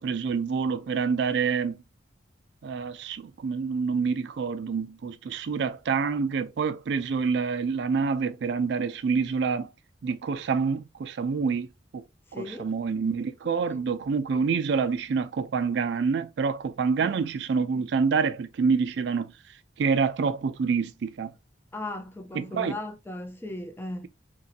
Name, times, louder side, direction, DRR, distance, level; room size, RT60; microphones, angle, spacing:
voice 1, 0.0-1.8 2.6-9.7 10.0-11.7 11.9-12.0 12.3-19.3 19.8-21.3 22.3-22.8, right 5 dB, 60° right, 0.3 m, -27 dB
voice 2, 12.3-12.7 13.5-13.8 17.0-17.2 21.7-24.1, left 2 dB, 10° left, 0.4 m, -37 dB
3.0 x 2.6 x 2.5 m
head